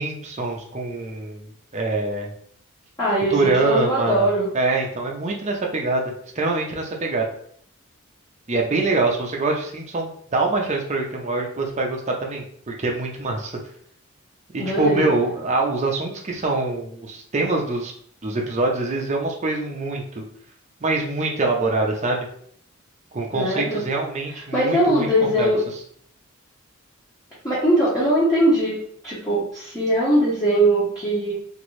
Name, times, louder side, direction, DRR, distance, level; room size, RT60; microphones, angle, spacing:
voice 1, 0.0-2.3 3.3-4.3 4.5-7.3 8.5-13.5 14.5-17.9 18.2-20.2 20.8-22.3 23.1-25.5, right 3 dB, 30° right, 0 dB, 0.5 m, -24 dB
voice 2, 3.0-4.5 14.6-15.0 23.3-23.8 24.5-25.6 27.4-28.8 29.0-31.3, right 1 dB, 15° left, -10 dB, 0.9 m, -20 dB
3.0 x 2.6 x 3.0 m, 0.63 s
head